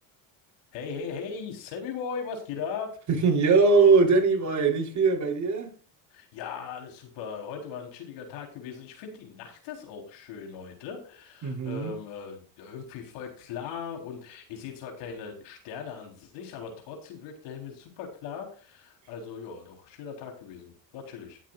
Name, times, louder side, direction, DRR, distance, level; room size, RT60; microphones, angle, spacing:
voice 1, 0.7-2.9 6.1-21.4, left 6 dB, 80° left, 4.1 m, -39 dB
voice 2, 3.1-5.7 11.4-12.0, right 4 dB, 40° right, 3.8 m, -21 dB
19.0 x 7.7 x 2.5 m
supercardioid pair, 100°, 43 cm